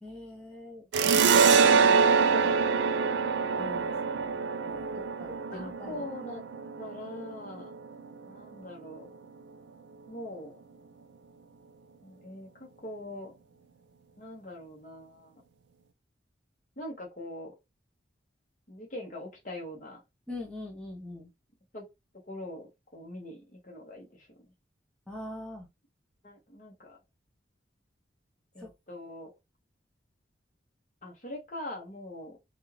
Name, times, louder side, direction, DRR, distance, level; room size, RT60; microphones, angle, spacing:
voice 1, 0.0-0.9 1.2-2.7 3.6-4.3 4.6-6.0 20.3-21.3 25.1-25.7 28.6-28.7, left 2 dB, 5° left, 0.6 m, -42 dB
sound 1, 0.9-8.1, right 5 dB, 70° right, 0.3 m, -25 dB
voice 2, 5.5-6.4 6.8-7.7 8.2-9.2 10.1-10.6 12.0-13.3 14.2-15.3 16.8-17.5 18.7-20.0 21.7-21.8 22.3-24.3 26.2-27.0 28.5-29.3 31.0-32.4, left 1 dB, 40° left, 0.9 m, -42 dB
2.5 x 2.3 x 3.2 m
head